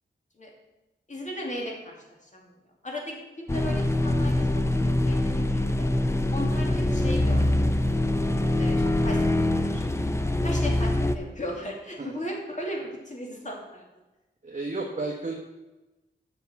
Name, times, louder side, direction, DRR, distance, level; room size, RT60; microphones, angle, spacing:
voice 1, 1.1-1.9 2.2-2.5 2.8-4.6 5.0-5.9 6.3-7.5 8.6-9.2 9.6-9.8 10.4-13.8, equal, 40° left, -1 dB, 2.5 m, -36 dB
sound 1, 3.5-11.2, left 1 dB, 15° left, 0.6 m, -24 dB
voice 2, 14.4-15.3, right 3 dB, 40° right, -2 dB, 1.3 m, -32 dB
7.9 x 6.0 x 7.0 m, 1.1 s
wide cardioid pair, 95°, 19 cm